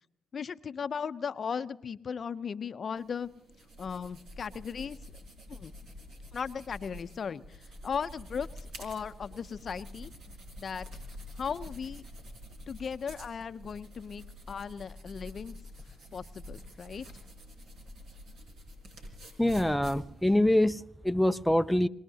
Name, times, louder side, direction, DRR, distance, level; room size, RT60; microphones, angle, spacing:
voice 1, 0.3-3.3 3.8-5.0 5.5-5.7 6.3-10.1 10.6-11.1 11.4-12.0 12.7-15.6 16.1-17.1, left 6 dB, 50° left, 13 dB, 0.6 m, -37 dB
sound 1, 3.0-20.5, left 1 dB, 75° right, 4.9 m, -47 dB
voice 2, 19.4-21.9, left 1 dB, 5° left, 9 dB, 0.5 m, -25 dB
26.0 x 19.0 x 2.8 m, 0.74 s
supercardioid pair, 65°, 0 cm